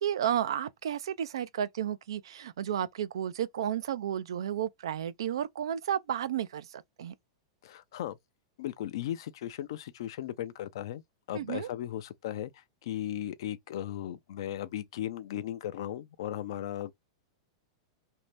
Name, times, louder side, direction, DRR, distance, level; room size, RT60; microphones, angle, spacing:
voice 1, 0.0-7.1 11.3-11.7, right 10 dB, 85° right, 0.3 m, -32 dB
voice 2, 7.6-8.2 8.6-11.0 11.3-16.9, left 11 dB, 70° left, 0.4 m, -37 dB
2.7 x 2.1 x 3.2 m
hypercardioid pair, 135°, 3 cm